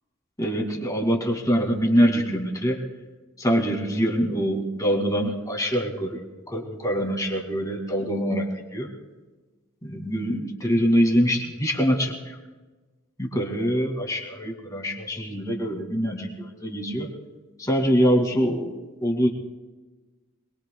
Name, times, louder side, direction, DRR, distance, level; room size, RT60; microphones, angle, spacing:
voice 1, 0.4-2.8 3.4-6.2 6.5-8.5 8.7-8.9 9.8-12.4 13.2-17.1 17.6-19.3, equal, 15° left, 1 dB, 2.3 m, -24 dB
25.0 x 21.5 x 2.3 m, 1.2 s
head